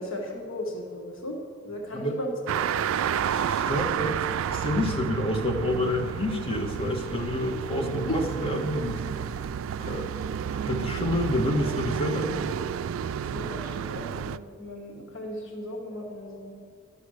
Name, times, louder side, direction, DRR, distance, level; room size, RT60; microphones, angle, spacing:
voice 1, 0.0-1.4 1.6-2.3 2.7-2.9 8.1-8.2 13.3-16.5, left 1 dB, 75° left, 0 dB, 1.5 m, -36 dB
sound 1, 2.5-14.4, right 8 dB, 85° right, 0.3 m, -31 dB
voice 2, 3.3-9.0 9.3-9.4 9.8-10.1 10.6-12.4, left 1 dB, 30° left, 0 dB, 1.3 m, -29 dB
11.0 x 7.1 x 6.4 m, 2.1 s
head